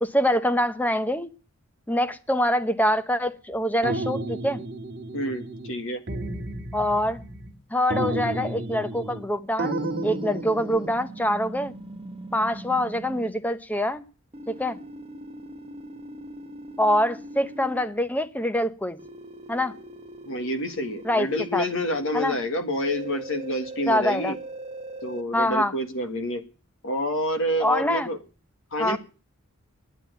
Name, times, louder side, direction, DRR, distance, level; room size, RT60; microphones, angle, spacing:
voice 1, 0.0-1.3 1.9-4.6 6.7-7.2 7.7-9.7 10.0-11.7 12.3-14.0 14.5-14.8 16.8-19.0 19.5-19.7 21.0-21.6 22.1-22.3 23.9-24.3 25.3-25.7 27.6-28.1 28.8-29.0, left 1 dB, 10° left, 12 dB, 0.8 m, -25 dB
sound 1, 3.8-5.8 6.1-7.5 7.9-9.3 9.6-10.9, right 2 dB, 50° right, 2.0 m, -32 dB
voice 2, 5.1-6.0 20.3-24.4 25.0-26.4 26.8-28.2 28.7-29.0, equal, 65° left, 8 dB, 1.8 m, -28 dB
sound 2, 9.8-13.3 14.3-17.8 19.0-22.1 22.8-25.2, right 1 dB, 30° right, 1.1 m, -41 dB
11.5 x 9.2 x 9.2 m, 0.37 s
head